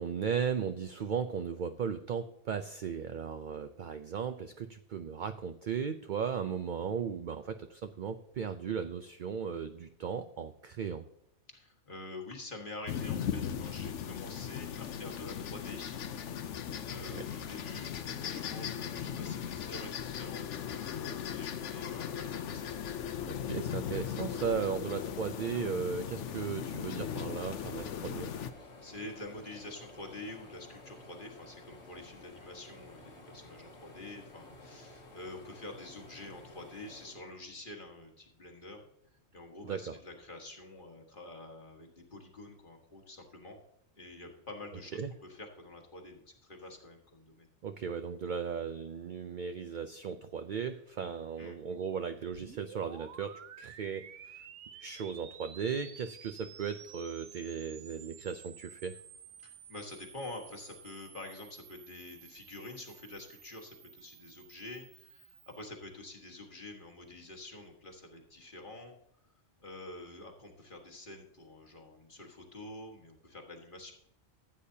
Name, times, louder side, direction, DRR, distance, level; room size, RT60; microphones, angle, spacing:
voice 1, 0.0-11.0 17.0-17.2 23.3-28.3 39.6-39.9 45.0-45.1 47.6-54.4 54.8-59.0, right 7 dB, 55° right, 8 dB, 0.6 m, -36 dB
voice 2, 11.5-16.0 16.8-22.7 28.6-38.8 39.3-43.6 44.0-47.5 51.4-51.6 59.4-69.0 69.6-73.9, left 2 dB, 45° left, 2 dB, 1.7 m, -47 dB
sound 1, 12.9-28.5, left 8 dB, 80° left, 1.0 m, -38 dB
sound 2, 25.5-38.1 38.5-39.6, left 2 dB, 65° left, 1.7 m, -54 dB
sound 3, 52.3-65.6, right 9 dB, 90° right, 1.1 m, -53 dB
15.0 x 8.4 x 2.8 m, 0.74 s
omnidirectional pair, 1.2 m